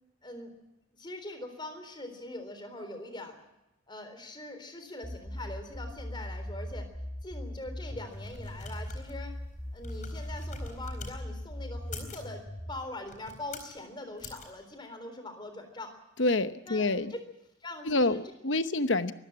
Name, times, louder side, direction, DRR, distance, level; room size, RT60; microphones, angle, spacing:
voice 1, 0.2-0.5 0.9-3.4 3.9-6.9 7.2-9.4 9.7-12.4 12.7-15.9 16.7-17.2 17.6-18.2, left 2 dB, 20° left, 7 dB, 3.7 m, -42 dB
sound 1, 5.0-12.7, equal, 5° left, 3.6 m, -39 dB
sound 2, 7.9-11.2 11.8-12.3 13.0-13.8 14.2-14.5, left 3 dB, 40° left, 4.3 m, -46 dB
voice 2, 16.2-17.1 17.8-19.1, left 2 dB, 65° left, 11 dB, 1.0 m, -27 dB
24.0 x 15.0 x 8.8 m, 0.93 s
head